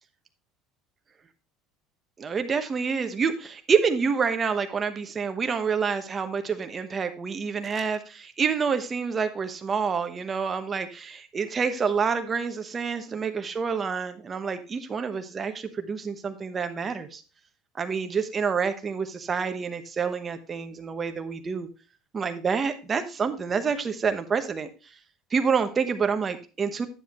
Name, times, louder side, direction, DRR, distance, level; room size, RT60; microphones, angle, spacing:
voice 1, 2.2-17.2 17.7-21.7 22.1-24.7 25.3-26.9, right 6 dB, 25° right, 8 dB, 1.1 m, -28 dB
10.0 x 7.2 x 3.0 m, 0.35 s
cardioid pair, 135°, 0 cm